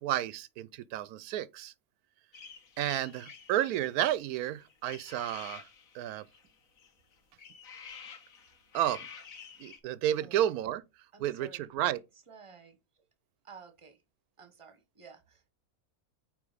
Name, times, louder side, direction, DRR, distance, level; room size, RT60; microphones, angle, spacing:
voice 1, 0.0-1.7 2.8-5.7 5.9-6.3 8.7-9.1 9.6-10.8 11.2-12.0, right 12 dB, 90° right, 1.1 m, -31 dB
sound 1, 2.3-9.8, left 6 dB, 70° left, 1.7 m, -50 dB
voice 2, 10.2-10.5 11.1-11.7 12.3-13.0 13.4-14.0 14.4-15.5, right 5 dB, 25° right, 1.1 m, -53 dB
8.8 x 3.2 x 5.0 m
omnidirectional pair, 1.5 m